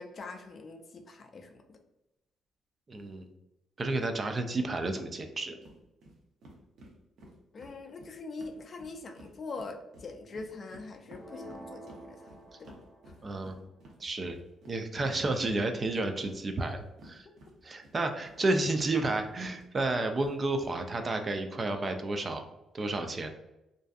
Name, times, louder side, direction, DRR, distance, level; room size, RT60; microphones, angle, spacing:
voice 1, 0.0-1.8 7.5-12.3 12.6-12.8, left 3 dB, 45° left, 5 dB, 0.4 m, -43 dB
voice 2, 2.9-3.3 3.8-5.6 13.2-13.6 14.0-14.4 14.7-17.3 17.6-22.4 22.7-23.3, right 2 dB, 35° right, 6 dB, 0.3 m, -31 dB
sound 1, 5.6-5.8 6.0-6.1 6.4-9.3 9.6-17.9 18.2-20.7, right 1 dB, 70° right, 0.7 m, -53 dB
sound 2, 11.2-13.3, equal, 5° left, 0.6 m, -48 dB
2.5 x 2.4 x 2.3 m, 0.92 s
cardioid pair, 90°, 0 cm